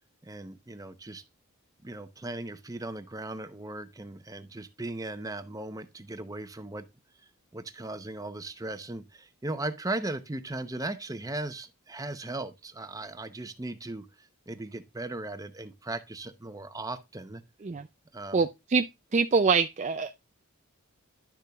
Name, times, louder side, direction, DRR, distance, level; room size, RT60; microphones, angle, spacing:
voice 1, 0.2-1.2 1.8-6.9 7.5-17.4 18.1-18.4, right 2 dB, 15° right, 0.8 m, -37 dB
voice 2, 18.3-18.9 19.1-20.2, right 4 dB, 30° right, 0.4 m, -25 dB
11.5 x 6.7 x 2.3 m
head